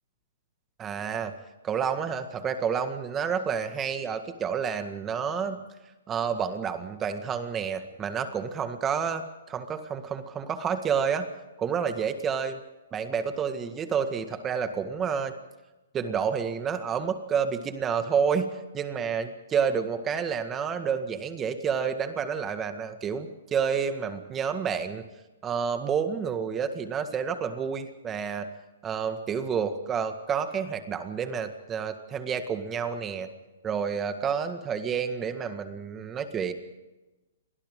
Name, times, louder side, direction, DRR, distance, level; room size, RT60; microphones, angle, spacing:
voice 1, 0.8-1.3 1.6-5.6 6.1-11.3 11.6-12.6 12.9-15.3 15.9-25.0 25.4-28.5 28.8-33.3 33.6-36.5, right 7 dB, 15° right, 8 dB, 1.9 m, -29 dB
29.0 x 23.0 x 3.9 m, 1.1 s
hypercardioid pair, 145°, 0 cm